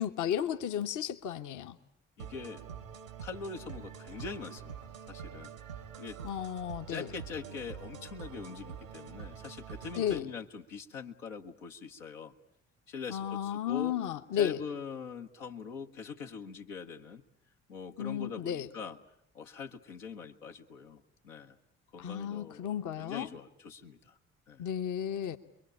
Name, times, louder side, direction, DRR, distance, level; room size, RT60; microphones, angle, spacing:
voice 1, 0.0-1.8 6.2-7.1 10.0-10.3 13.1-14.6 18.0-18.7 22.0-23.3 24.6-25.4, left 10 dB, 50° left, 7 dB, 1.1 m, -33 dB
voice 2, 2.2-2.6 3.2-5.5 6.0-6.2 6.9-12.3 12.9-14.0 14.3-17.2 17.7-19.0 19.3-21.6 21.9-22.7 23.0-24.2 24.5-24.6, left 5 dB, 75° left, 2 dB, 1.2 m, -43 dB
sound 1, 2.2-10.2, right 7 dB, 85° right, 1.3 m, -46 dB
28.0 x 22.5 x 8.7 m, 0.71 s
figure-of-eight pair, 45°, 39 cm